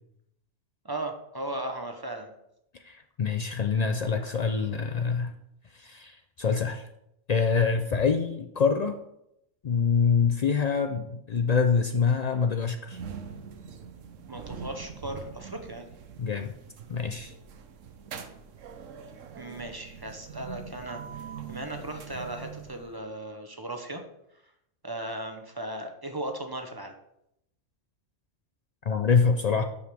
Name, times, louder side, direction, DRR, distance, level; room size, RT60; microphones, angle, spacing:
voice 1, 0.8-2.3 14.3-15.9 19.4-21.0 21.5-24.0 24.8-26.9, right 1 dB, 20° right, 5 dB, 0.7 m, -36 dB
voice 2, 2.8-5.3 5.7-6.8 7.3-9.0 9.6-13.0 16.2-16.5 16.9-17.3 28.9-29.6, left 5 dB, 75° left, 7 dB, 0.3 m, -25 dB
sound 1, 12.9-23.0, right 6 dB, 80° right, 1.1 m, -43 dB
11.5 x 4.8 x 3.5 m, 0.81 s
omnidirectional pair, 1.3 m